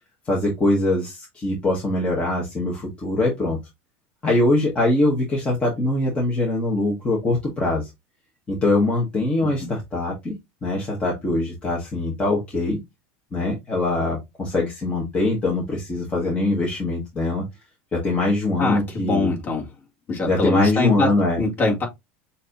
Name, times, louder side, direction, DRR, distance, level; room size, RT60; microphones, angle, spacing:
voice 1, 0.3-3.6 4.2-7.9 8.5-10.3 10.6-12.8 13.3-17.5 17.9-19.3 20.3-21.4, left 2 dB, 15° left, 1.2 m, -22 dB
voice 2, 18.6-19.7 20.1-21.1 21.4-21.9, left 3 dB, 35° left, 1.9 m, -23 dB
6.3 x 2.7 x 2.5 m
supercardioid pair, 140°, 6 cm